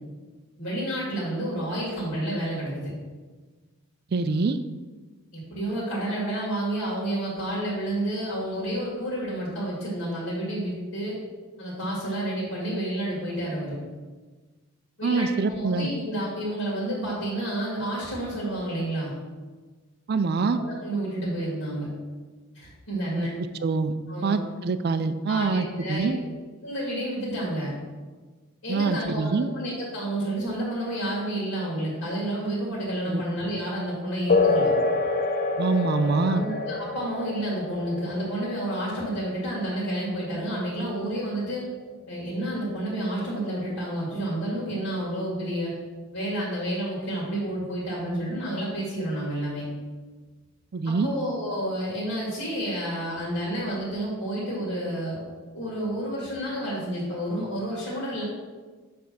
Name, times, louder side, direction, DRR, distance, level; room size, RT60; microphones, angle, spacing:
voice 1, 0.6-2.9 5.3-11.2 11.6-13.8 15.0-19.1 20.4-21.9 22.5-23.3 24.1-24.4 25.3-26.3 26.6-27.7 28.6-34.7 36.3-41.7 42.1-45.7 46.1-49.6 50.9-55.2 55.5-58.2, right 1 dB, 65° left, -6 dB, 2.3 m, -30 dB
voice 2, 4.1-4.6 15.0-15.9 20.1-20.6 23.2-23.3 23.6-23.9 24.2-26.2 28.7-29.5 33.1-33.2 35.6-36.5 50.7-51.1, right 4 dB, 50° right, 11 dB, 0.4 m, -25 dB
sound 1, 34.3-42.3, left 3 dB, 40° left, 0.6 m, -28 dB
7.2 x 3.4 x 6.2 m, 1.4 s
head